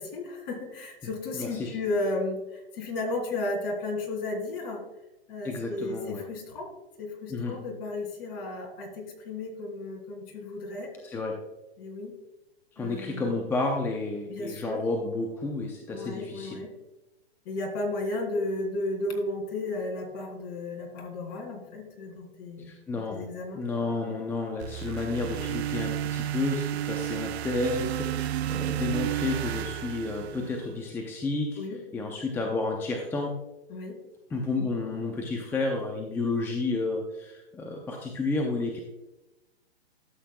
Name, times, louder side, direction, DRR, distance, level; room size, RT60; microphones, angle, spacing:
voice 1, 0.0-4.8 5.3-6.7 7.0-10.9 11.8-12.1 12.8-13.3 14.3-14.8 15.9-16.7 17.4-23.6 31.6-31.8 33.7-34.0, left 2 dB, 40° left, 1 dB, 2.9 m, -34 dB
voice 2, 1.3-1.7 5.4-6.2 7.3-7.6 11.0-11.4 12.8-16.6 22.7-23.2 23.6-31.6 31.9-33.3 34.3-38.8, left 3 dB, 5° left, 1 dB, 0.6 m, -31 dB
sound 1, 24.6-30.8, right 12 dB, 80° right, 0.5 m, -32 dB
12.5 x 7.7 x 2.3 m, 1.0 s
hypercardioid pair, 135°, 32 cm